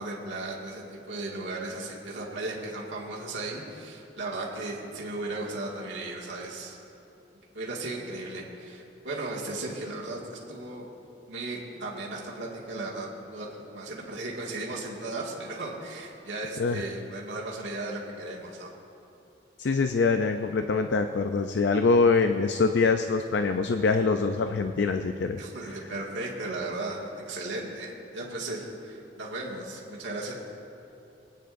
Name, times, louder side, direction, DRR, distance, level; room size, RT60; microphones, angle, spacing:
voice 1, 0.0-6.8 7.5-10.9 11.3-18.7 25.4-30.3, right 2 dB, 90° right, -4 dB, 1.9 m, -36 dB
voice 2, 19.6-25.4, left 4 dB, 70° left, 7 dB, 0.4 m, -24 dB
23.5 x 9.4 x 2.5 m, 2.8 s
head